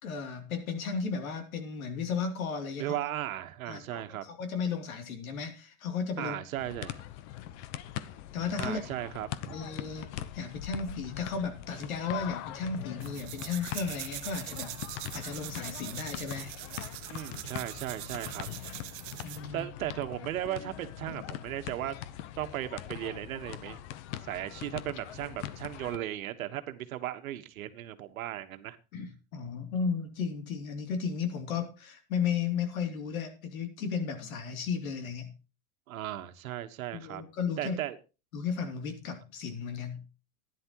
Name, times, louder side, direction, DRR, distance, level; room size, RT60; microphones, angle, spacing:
voice 1, 0.0-3.0 3.7-6.3 8.3-8.8 9.5-10.1 10.3-14.8 15.1-16.5 19.2-19.7 28.9-35.3 36.9-37.8 38.3-40.0, left 6 dB, 90° left, 6 dB, 3.1 m, -34 dB
voice 2, 2.8-4.2 6.2-7.0 8.6-9.6 17.1-18.5 19.5-21.9 22.4-23.8 24.2-28.8 35.9-37.2 37.6-38.0, right 13 dB, 90° right, 9 dB, 1.5 m, -36 dB
sound 1, 6.6-26.0, left 13 dB, 60° left, 1.0 m, -42 dB
sound 2, 13.0-19.5, right 18 dB, 55° right, 1.1 m, -42 dB
15.0 x 10.5 x 3.0 m, 0.31 s
supercardioid pair, 140°, 41 cm